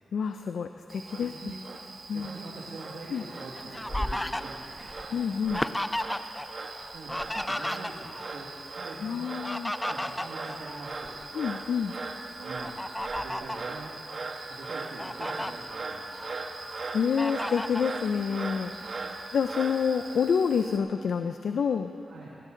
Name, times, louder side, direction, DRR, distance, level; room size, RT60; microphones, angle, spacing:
voice 1, 0.1-1.3 2.1-2.3 3.1-3.2 5.1-5.6 9.0-9.7 11.3-11.9 16.9-19.0 19.3-21.9, left 6 dB, 80° left, 7 dB, 0.5 m, -28 dB
Frog, 0.9-20.8, right 3 dB, 55° right, 1.3 m, -39 dB
voice 2, 1.1-1.6 2.1-4.9 6.9-9.3 9.9-11.3 12.4-12.8 13.1-14.0 14.5-16.2 18.8-19.3 22.1-22.4, right 3 dB, 85° right, -5 dB, 2.0 m, -44 dB
Fowl, 3.1-6.5 6.7-8.3 9.2-11.3 11.8-12.0 12.6-13.7 14.3-14.4 14.7-15.5 16.0-16.7 17.2-17.9, left 1 dB, 10° left, 0.6 m, -34 dB
19.0 x 17.5 x 3.9 m, 2.8 s
cardioid pair, 60°, 0 cm